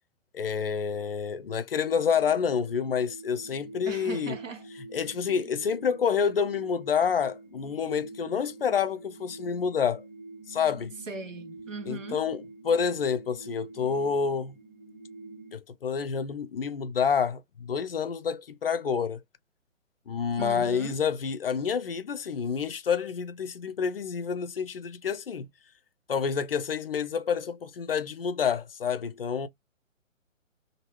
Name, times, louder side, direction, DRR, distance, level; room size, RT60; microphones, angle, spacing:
voice 1, 0.3-4.4 4.9-10.0 10.5-11.0 11.9-14.6 15.5-19.2 20.1-25.5 26.1-29.5, left 6 dB, 50° left, 0.4 m, -28 dB
sound 1, 1.9-15.6, right 2 dB, 5° right, 0.9 m, -45 dB
voice 2, 3.9-4.6 5.3-5.5 11.1-12.2 20.4-21.0, right 3 dB, 70° right, 1.3 m, -39 dB
2.9 x 2.7 x 2.8 m
figure-of-eight pair, 135°, 39 cm